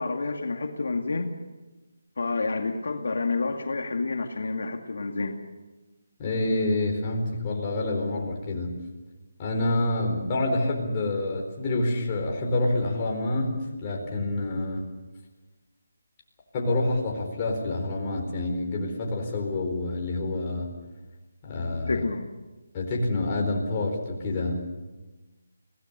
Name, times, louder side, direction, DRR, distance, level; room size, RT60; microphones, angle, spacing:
voice 1, 0.0-1.3 2.2-5.4 21.9-22.3, left 3 dB, 65° left, 4 dB, 2.2 m, -29 dB
voice 2, 6.2-8.8 9.4-14.8 16.5-20.7 21.4-21.9 22.7-24.6, left 2 dB, 20° left, -1 dB, 4.3 m, -27 dB
25.0 x 18.0 x 6.8 m, 1.2 s
hypercardioid pair, 170°, 0 cm